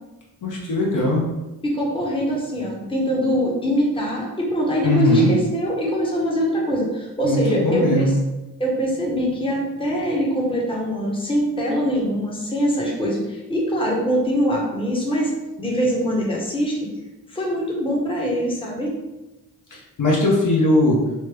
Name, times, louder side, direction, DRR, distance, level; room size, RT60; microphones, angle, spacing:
voice 1, 0.4-1.2 4.8-5.3 7.2-8.1 19.7-21.0, left 2 dB, 55° left, -3 dB, 1.0 m, -19 dB
voice 2, 1.6-8.1 8.6-15.3 15.6-16.9 17.3-19.0, equal, 15° left, -3 dB, 0.9 m, -23 dB
3.2 x 2.1 x 3.3 m, 1.0 s
cardioid pair, 65°, 38 cm